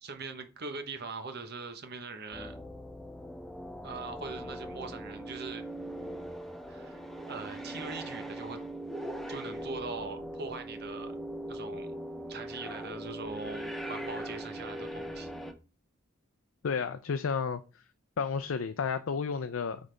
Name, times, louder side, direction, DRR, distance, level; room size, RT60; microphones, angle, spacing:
voice 1, 0.0-2.6 3.8-5.6 6.7-7.0 7.3-8.6 9.3-11.1 11.5-11.9 12.3-15.3, right 4 dB, 50° right, 1.0 m, -41 dB
sound 1, 2.3-15.5, right 1 dB, ahead, 0.7 m, -40 dB
voice 2, 16.6-17.6 18.2-19.8, left 5 dB, 70° left, 0.5 m, -31 dB
8.9 x 4.0 x 3.3 m
head